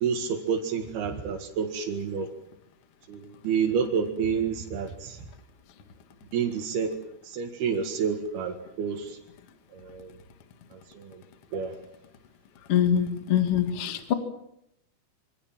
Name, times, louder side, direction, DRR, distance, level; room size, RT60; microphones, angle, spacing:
voice 1, 0.0-2.3 3.1-5.3 6.3-6.9 7.2-9.2 9.7-10.1 10.7-11.2 11.5-11.7, right 6 dB, 85° right, 1 dB, 3.9 m, -29 dB
voice 2, 12.7-14.1, left 9 dB, 45° left, 7 dB, 2.5 m, -24 dB
27.0 x 24.5 x 7.5 m, 0.79 s
omnidirectional pair, 4.4 m